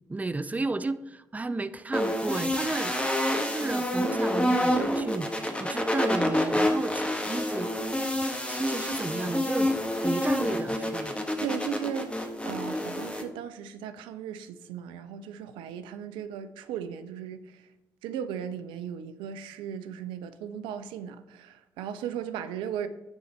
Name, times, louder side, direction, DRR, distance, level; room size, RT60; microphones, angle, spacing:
voice 1, 0.1-2.9 3.4-5.3 5.6-7.7 8.5-9.7 10.0-11.1, right 3 dB, 15° right, 0.5 m, -32 dB
sound 1, 1.9-13.2, left 1 dB, 15° left, 1.4 m, -28 dB
voice 2, 11.4-17.6 18.0-22.9, right 8 dB, 70° right, 0.4 m, -37 dB
9.7 x 3.9 x 4.4 m
hypercardioid pair, 40°, 9 cm